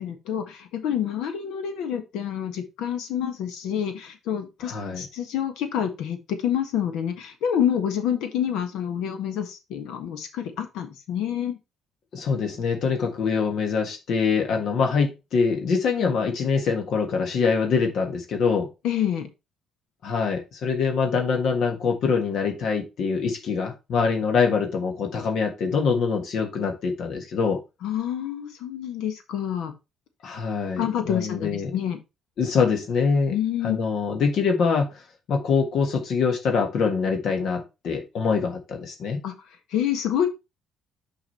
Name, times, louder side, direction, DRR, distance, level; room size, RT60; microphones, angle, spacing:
voice 1, 0.0-11.6 18.8-19.3 27.8-29.8 30.8-32.0 33.3-33.8 39.2-39.3 39.7-40.3, left 9 dB, 80° left, 1.4 m, -27 dB
voice 2, 4.6-5.1 12.1-18.7 20.0-27.6 30.2-31.7 32.4-33.3 33.6-35.0 35.3-39.2, left 5 dB, 65° left, 1.5 m, -24 dB
5.9 x 4.9 x 4.3 m
cardioid pair, 90°, 0 cm